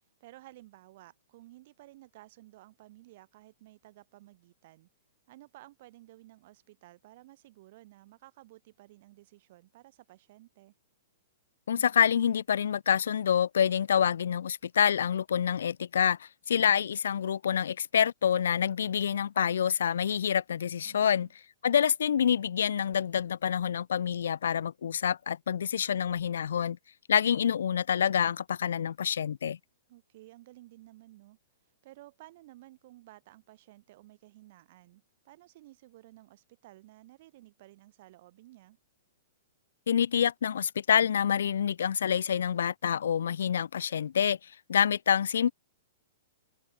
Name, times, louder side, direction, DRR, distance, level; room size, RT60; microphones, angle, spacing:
voice 1, 0.2-4.9 5.3-10.7 20.8-21.3 29.9-31.4 31.8-38.8, right 17 dB, 35° right, 6.6 m, -54 dB
voice 2, 11.7-21.3 21.6-26.8 27.1-29.6 39.9-44.4 44.7-45.5, left 8 dB, 80° left, 0.5 m, -27 dB
hypercardioid pair, 175°, 0 cm